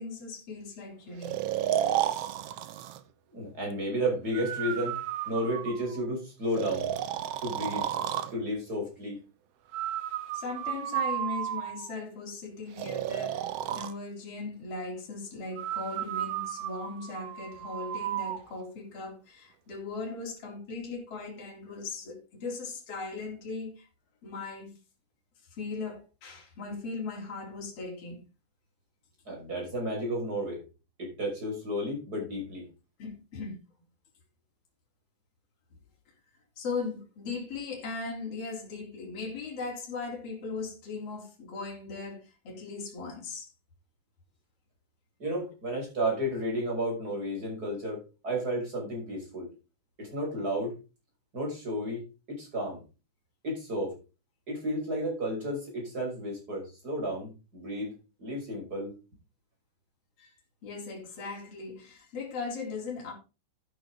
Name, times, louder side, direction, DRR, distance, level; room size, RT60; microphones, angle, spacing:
voice 1, 0.0-1.4 10.3-23.9 24.2-24.8 25.5-28.2 33.0-33.6 36.6-43.5 60.2-60.3 60.6-63.1, left 4 dB, 45° left, 4.7 m, -38 dB
Breathing, 1.2-3.0 4.3-6.0 6.5-8.3 9.7-12.0 12.8-13.9 15.6-18.4, right 11 dB, 80° right, 1.4 m, -33 dB
voice 2, 3.3-5.0 5.3-6.9 7.4-7.9 8.3-9.2 29.3-30.6 31.0-32.7 45.2-49.5 50.0-50.7 51.3-52.8 53.4-53.9 54.5-57.9 58.2-58.9, equal, 25° right, 6.3 m, -32 dB
12.0 x 9.6 x 3.8 m
omnidirectional pair, 3.8 m